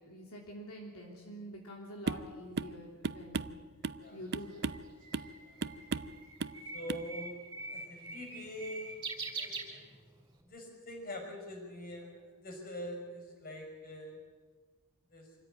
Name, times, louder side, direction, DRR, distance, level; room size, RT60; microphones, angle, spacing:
voice 1, 0.1-3.6 4.1-4.7, equal, 80° left, -1 dB, 3.1 m, -47 dB
sound 1, 2.1-2.3 2.6-2.8 3.0-4.0 4.3-4.9 5.1-5.3 5.6-6.1 6.4-6.6 6.9-7.1, right 4 dB, 50° right, 0.6 m, -36 dB
Bird, 4.1-10.3, right 3 dB, 20° right, 4.8 m, -44 dB
voice 2, 6.7-7.4 7.7-9.0 9.3-9.8 10.4-14.2 15.1-15.3, left 1 dB, 40° left, 3 dB, 5.8 m, -44 dB
26.0 x 14.5 x 9.3 m, 1.5 s
head